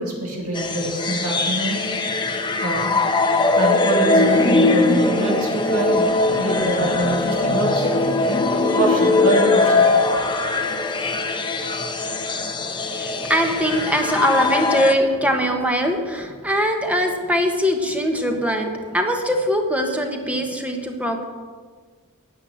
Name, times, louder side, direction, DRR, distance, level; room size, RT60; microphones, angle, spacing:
voice 1, 0.0-1.8 2.6-2.9 3.6-6.1 6.4-8.2 8.8-9.9, right 1 dB, 80° right, -2 dB, 2.4 m, -24 dB
sound 1, 0.5-15.0, left 3 dB, 20° left, 0.9 m, -20 dB
voice 2, 13.0-21.2, equal, 5° right, 3 dB, 1.3 m, -22 dB
10.5 x 8.5 x 7.8 m, 1.5 s
head